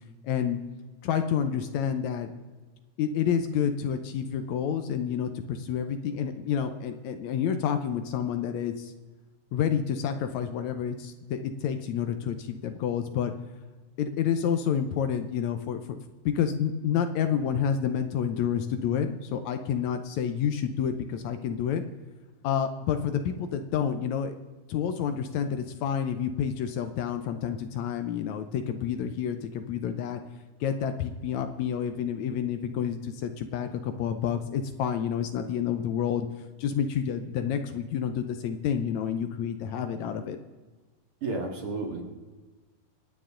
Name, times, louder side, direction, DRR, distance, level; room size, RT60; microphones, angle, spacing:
voice 1, 0.2-0.6 1.0-2.3 3.0-8.9 9.5-13.3 14.0-21.8 22.4-24.4 24.7-30.2 30.6-36.3 36.6-40.4, left 8 dB, 75° left, 8 dB, 2.0 m, -29 dB
voice 2, 41.2-42.0, right 3 dB, 50° right, 1 dB, 2.8 m, -31 dB
27.0 x 9.4 x 3.8 m, 1.3 s
omnidirectional pair, 3.5 m